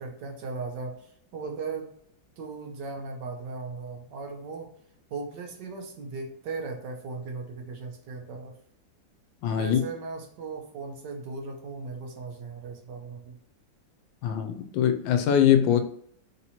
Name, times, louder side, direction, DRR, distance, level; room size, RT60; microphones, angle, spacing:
voice 1, 0.0-1.9 2.4-4.7 5.1-8.5 9.6-13.4, right 4 dB, 70° right, 2 dB, 1.4 m, -37 dB
voice 2, 9.4-9.8 14.2-15.8, left 9 dB, 80° left, 8 dB, 1.3 m, -22 dB
3.8 x 2.9 x 4.1 m, 0.65 s
omnidirectional pair, 2.1 m